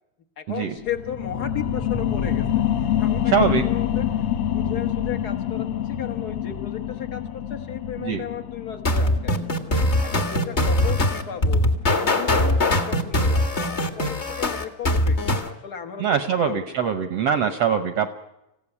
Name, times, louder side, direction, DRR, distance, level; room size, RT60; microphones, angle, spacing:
voice 1, 0.4-2.6 3.0-3.3 3.6-4.1 4.4-9.4 10.0-11.7 12.0-16.9, left 9 dB, 60° left, 6 dB, 0.9 m, -35 dB
sound 1, 0.8-11.9 12.4-12.5, left 10 dB, 85° left, 1.2 m, -27 dB
voice 2, 3.3-3.6 8.0-8.2 16.0-18.1, right 8 dB, 70° right, 8 dB, 1.5 m, -23 dB
sound 2, 8.8-15.5, left 1 dB, 35° left, 1.0 m, -21 dB
26.5 x 15.5 x 9.9 m, 0.92 s
omnidirectional pair, 3.9 m